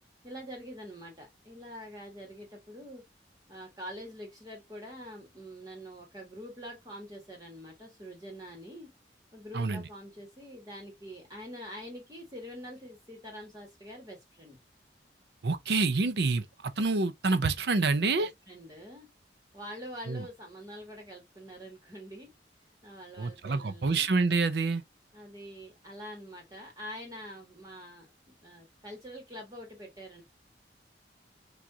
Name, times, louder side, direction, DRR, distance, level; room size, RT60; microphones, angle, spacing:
voice 1, 0.2-3.0 3.5-8.9 9.3-14.6 18.0-19.1 19.5-22.3 22.8-24.1 25.1-28.1 28.4-30.2, equal, 20° right, 1.5 m, -45 dB
voice 2, 15.4-16.5 16.8-18.3 20.1-20.2 23.2-24.8, right 3 dB, 70° right, 0.6 m, -27 dB
6.0 x 2.5 x 2.7 m
head